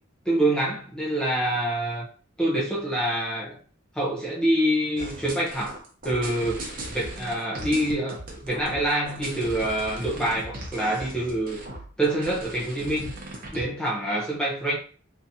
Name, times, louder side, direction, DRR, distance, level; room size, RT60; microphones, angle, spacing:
voice 1, 0.2-2.1 2.4-3.6 3.9-6.6 6.9-11.6 12.0-13.1 13.5-14.8, right 1 dB, 5° left, 0.8 m, -26 dB
sound 1, 5.0-13.6, right 1 dB, 45° right, 0.9 m, -38 dB
3.6 x 2.8 x 2.8 m
head